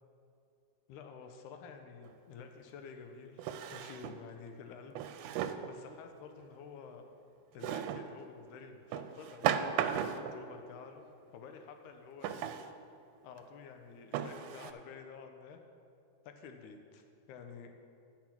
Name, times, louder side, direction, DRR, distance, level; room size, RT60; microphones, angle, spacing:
voice 1, 0.9-3.4 3.7-5.0 5.7-7.0 7.5-12.4 13.2-15.6 16.3-17.7, left 5 dB, 90° left, 5 dB, 2.2 m, -50 dB
Drawer open or close, 2.0-2.1 3.4-4.2 5.0-5.7 7.6-8.1 8.9-10.4 12.2-12.7 13.4-13.5 14.1-14.7, right 9 dB, 85° right, 2.0 m, -35 dB
10.5 x 6.0 x 5.9 m, 2.5 s
omnidirectional pair, 3.4 m